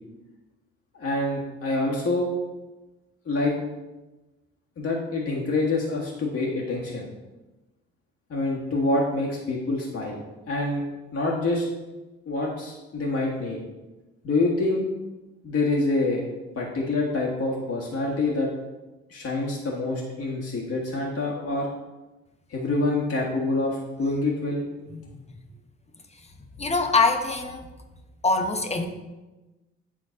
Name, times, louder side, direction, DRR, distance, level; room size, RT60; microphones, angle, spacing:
voice 1, 1.0-2.3 3.2-3.6 4.8-7.0 8.3-10.2 10.5-10.8 11.1-11.6 12.2-13.6 14.2-14.9 15.4-16.2 16.5-18.5 19.1-21.7 22.5-24.6, left 2 dB, 45° left, -3 dB, 1.7 m, -26 dB
voice 2, 24.9-25.2 26.6-27.7 28.2-28.9, left 3 dB, 20° left, 4 dB, 1.1 m, -24 dB
10.0 x 3.8 x 4.1 m, 1.1 s
hypercardioid pair, 50°, 33 cm